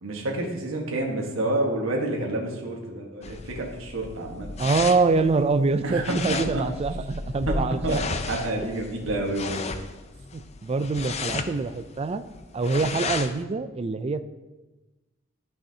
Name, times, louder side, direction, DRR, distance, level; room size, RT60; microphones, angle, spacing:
voice 1, 0.0-4.5 5.8-6.6 7.5-7.6 7.8-9.6, right 1 dB, 75° right, 0 dB, 1.4 m, -29 dB
sound 1, 3.2-13.4, left 4 dB, 30° left, 0.4 m, -34 dB
voice 2, 4.6-8.2 10.3-12.2 12.5-14.2, right 3 dB, 30° right, 11 dB, 0.3 m, -25 dB
11.5 x 5.6 x 2.8 m, 1.1 s
head